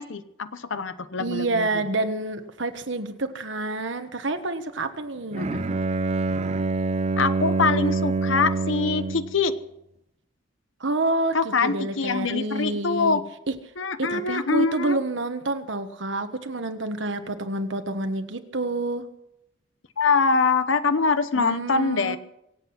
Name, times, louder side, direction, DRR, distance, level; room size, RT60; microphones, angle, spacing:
voice 1, 0.0-1.8 5.4-5.6 7.2-9.5 11.3-13.2 13.8-15.0 20.0-22.2, left 4 dB, 75° left, 12 dB, 0.9 m, -24 dB
voice 2, 1.2-5.7 10.8-13.2 13.5-13.6 14.0-19.1 21.3-22.2, right 2 dB, 70° right, 8 dB, 1.3 m, -28 dB
Bowed string instrument, 5.3-9.4, right 3 dB, 35° right, 0.5 m, -26 dB
24.5 x 8.3 x 5.9 m, 0.80 s
head